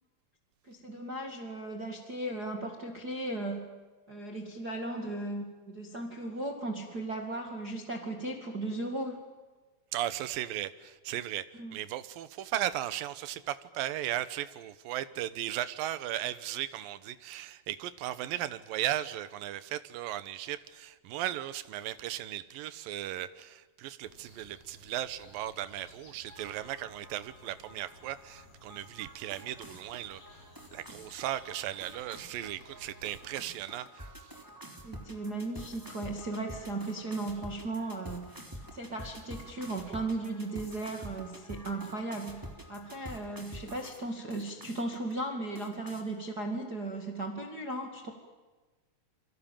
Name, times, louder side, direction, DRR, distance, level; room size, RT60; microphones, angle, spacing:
voice 1, 0.6-3.7 4.1-9.2 11.6-11.7 34.8-48.1, right 2 dB, 30° right, 3 dB, 2.0 m, -36 dB
voice 2, 9.9-11.5 11.7-30.2 30.7-34.1, right 13 dB, 70° right, 14 dB, 2.5 m, -36 dB
sound 1, 24.0-33.7, left 2 dB, 50° left, 6.4 m, -58 dB
sound 2, 26.3-44.0 44.3-45.1 45.6-46.0, equal, 5° right, 2.6 m, -48 dB
28.5 x 24.5 x 7.4 m, 1.3 s
omnidirectional pair, 4.8 m